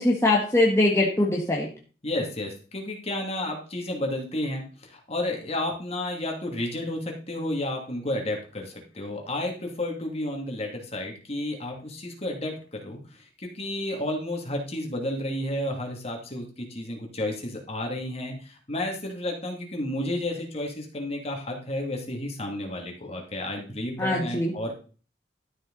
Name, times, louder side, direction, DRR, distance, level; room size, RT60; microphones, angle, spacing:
voice 1, 0.0-1.7 24.0-24.5, left 2 dB, 15° left, -3 dB, 1.8 m, -22 dB
voice 2, 2.0-24.7, left 1 dB, 35° left, 1 dB, 2.7 m, -32 dB
12.5 x 7.0 x 4.1 m, 0.38 s
head